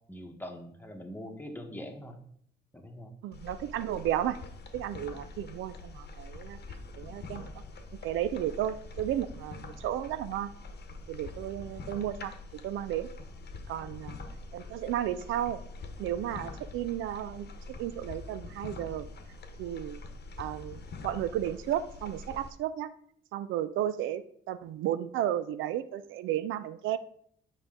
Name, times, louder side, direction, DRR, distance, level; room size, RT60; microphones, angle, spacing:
voice 1, 0.1-2.2 2.7-3.1 13.8-13.9, equal, 10° left, 4 dB, 1.1 m, -43 dB
voice 2, 3.2-4.4 4.7-6.6 7.0-7.5 8.0-10.5 11.1-12.3 12.6-13.1 13.7-14.2 14.5-15.6 16.0-17.5 17.8-19.1 19.6-20.0 20.4-22.9 23.3-27.0, right 11 dB, 80° right, 13 dB, 0.4 m, -33 dB
sound 1, 3.3-22.5, left 3 dB, 55° left, 1.0 m, -45 dB
7.2 x 5.0 x 3.7 m, 0.64 s
cardioid pair, 90°, 20 cm